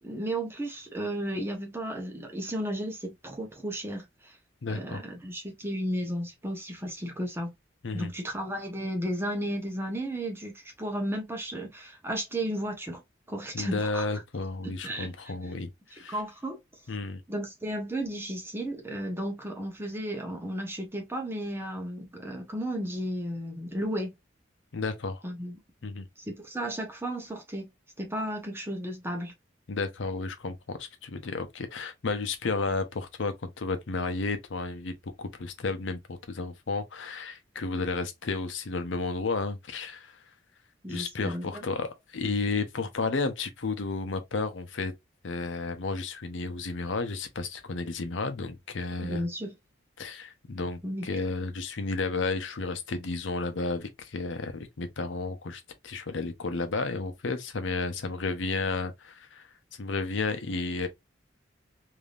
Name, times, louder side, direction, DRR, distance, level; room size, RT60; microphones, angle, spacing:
voice 1, 0.0-4.4 4.7-7.5 7.9-13.0 13.3-14.1 14.6-15.3 15.9-16.6 17.3-24.1 25.2-25.5 26.2-27.7 28.0-29.3 40.8-41.6 49.0-49.5 50.8-51.1, right 1 dB, 10° right, 0.8 m, -34 dB
voice 2, 4.6-5.0 7.8-8.1 13.5-16.2 16.9-17.2 24.7-25.2 25.8-26.0 29.7-40.1 40.9-44.9 45.2-49.2 50.0-59.5 59.8-60.9, left 3 dB, 75° left, 0.7 m, -32 dB
3.4 x 2.7 x 2.4 m
head